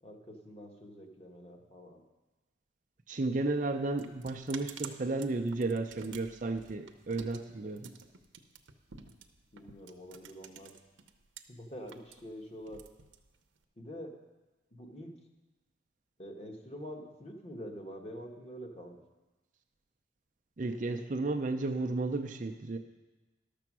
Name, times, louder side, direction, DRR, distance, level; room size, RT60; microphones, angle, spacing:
voice 1, 0.0-2.0 9.5-10.7 11.5-12.8 13.8-14.2 14.7-15.2 16.2-19.0, equal, 30° left, 2 dB, 1.1 m, -46 dB
voice 2, 3.1-7.9 20.6-22.8, right 2 dB, 40° right, 5 dB, 0.5 m, -33 dB
sound 1, 3.2-11.4 11.7-13.6, right 7 dB, 85° right, 0.7 m, -50 dB
12.0 x 6.9 x 6.1 m, 1.2 s
head